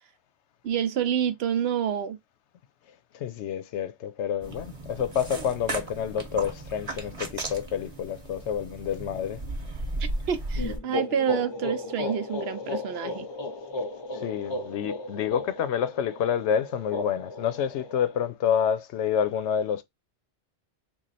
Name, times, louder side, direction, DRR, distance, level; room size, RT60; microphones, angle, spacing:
voice 1, 0.6-2.2 10.0-13.3, right 9 dB, 70° right, 0.8 m, -28 dB
voice 2, 3.1-9.4 14.1-19.8, left 8 dB, 85° left, 0.9 m, -28 dB
sound 1, 4.4-10.8, right 2 dB, 35° right, 0.9 m, -35 dB
sound 2, 10.6-18.3, left 2 dB, 35° left, 0.5 m, -35 dB
3.1 x 2.4 x 3.9 m
omnidirectional pair, 1.1 m